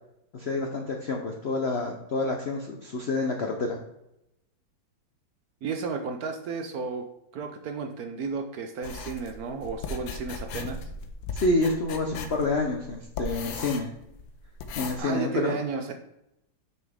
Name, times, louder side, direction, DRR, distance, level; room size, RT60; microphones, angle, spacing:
voice 1, 0.3-3.8 11.3-13.9 14.8-15.6, left 2 dB, 65° left, 2 dB, 0.6 m, -28 dB
voice 2, 5.6-7.1 7.3-10.9 15.0-15.9, right 5 dB, 65° right, 6 dB, 1.0 m, -33 dB
sound 1, 8.8-15.0, left 4 dB, 85° left, 1.5 m, -37 dB
6.7 x 5.8 x 3.5 m, 0.83 s
omnidirectional pair, 2.0 m